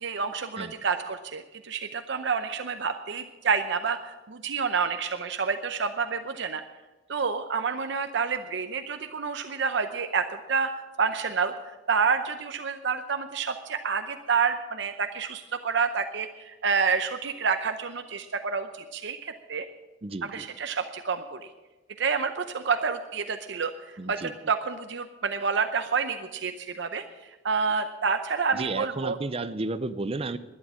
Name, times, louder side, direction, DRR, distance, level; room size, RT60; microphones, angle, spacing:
voice 1, 0.0-6.6 7.1-10.7 11.0-11.5 11.9-19.7 20.2-21.4 22.0-27.0 27.4-29.2, right 5 dB, 65° right, 8 dB, 0.7 m, -28 dB
voice 2, 20.0-20.5 24.0-24.3 28.5-30.4, right 3 dB, 30° right, 14 dB, 0.6 m, -32 dB
12.0 x 10.5 x 7.4 m, 1.2 s
head